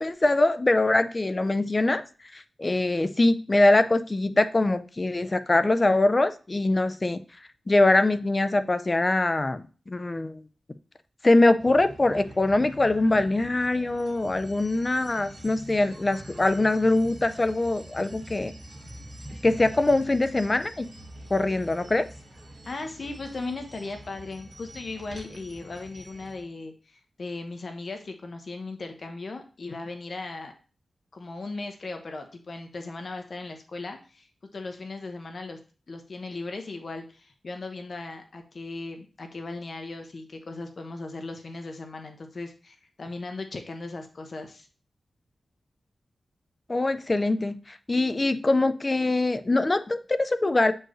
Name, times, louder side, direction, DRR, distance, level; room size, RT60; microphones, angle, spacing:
voice 1, 0.0-2.0 2.3-7.2 7.7-10.4 11.2-18.5 19.4-20.9 21.3-22.1 46.7-50.7, left 2 dB, 25° left, 12 dB, 0.5 m, -23 dB
sound 1, 11.6-26.4, right 1 dB, 40° right, 2.5 m, -45 dB
voice 2, 22.6-30.5 31.1-35.6 35.9-44.7, left 3 dB, 50° left, 5 dB, 0.9 m, -37 dB
7.7 x 4.6 x 3.1 m, 0.36 s
wide cardioid pair, 115°, 0 cm